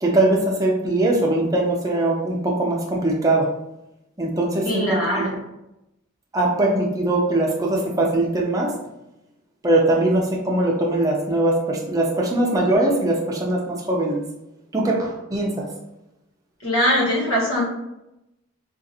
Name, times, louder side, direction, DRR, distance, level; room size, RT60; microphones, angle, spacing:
voice 1, 0.0-3.5 4.2-5.2 6.3-8.7 9.6-14.2 14.7-15.6, right 2 dB, 15° right, -1 dB, 0.5 m, -21 dB
voice 2, 4.6-5.3 16.6-17.6, equal, 85° left, -4 dB, 1.3 m, -21 dB
3.7 x 2.5 x 2.7 m, 0.89 s
head